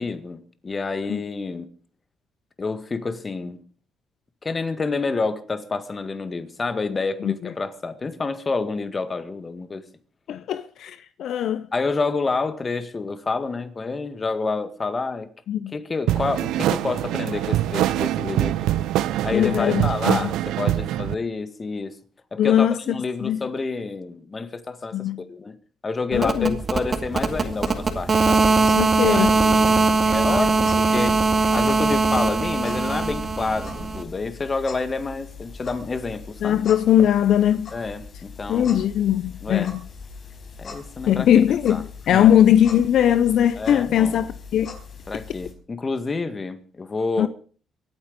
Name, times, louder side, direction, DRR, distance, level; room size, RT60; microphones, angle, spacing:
voice 1, 0.0-1.7 2.6-3.6 4.4-9.8 11.7-15.3 15.7-18.7 19.2-22.0 22.3-25.6 25.8-28.5 29.0-29.8 30.1-31.2 31.5-36.6 37.7-38.7 39.4-39.7 40.6-41.3 41.7-41.8 42.1-42.3 43.6-44.3 45.1-47.3, left 4 dB, 30° left, 1.8 m, -28 dB
voice 2, 7.2-7.5 10.3-11.7 15.5-15.7 19.3-20.3 22.4-23.5 24.9-25.2 26.1-26.6 28.7-29.3 36.4-37.7 38.5-39.8 41.1-44.8 47.2-47.3, left 10 dB, 70° left, 0.6 m, -20 dB
sound 1, 16.1-21.2, right 13 dB, 90° right, 0.6 m, -24 dB
sound 2, 26.1-34.0, right 3 dB, 40° right, 2.3 m, -21 dB
sound 3, 27.1-45.5, left 5 dB, 55° left, 4.8 m, -41 dB
24.0 x 9.0 x 5.2 m
cardioid pair, 90°, 0 cm